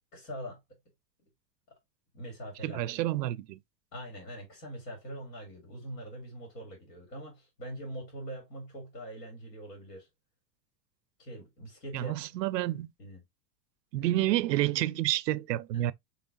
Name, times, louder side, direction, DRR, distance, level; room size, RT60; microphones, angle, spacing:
voice 1, 0.1-0.6 2.1-2.8 3.9-10.1 11.2-12.3 13.0-13.2 14.0-14.1 15.7-15.9, right 1 dB, 80° left, 2.8 m, -43 dB
voice 2, 2.6-3.6 11.9-12.9 13.9-15.9, right 15 dB, 90° right, 0.5 m, -29 dB
5.7 x 3.2 x 2.4 m
hypercardioid pair, 105°, 48 cm